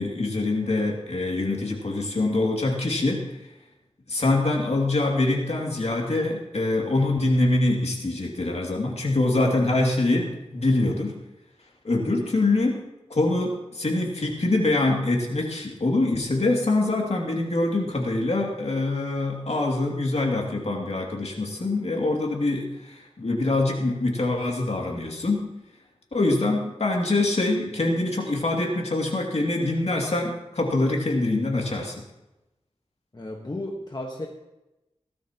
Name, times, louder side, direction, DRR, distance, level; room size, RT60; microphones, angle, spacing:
voice 1, 0.0-3.2 4.1-11.2 11.8-12.8 13.1-25.5 26.1-32.0, left 2 dB, 65° left, -1 dB, 2.6 m, -24 dB
voice 2, 33.1-34.3, left 1 dB, 40° left, 0 dB, 1.4 m, -33 dB
18.0 x 12.5 x 3.0 m, 0.97 s
wide cardioid pair, 80°, 12 cm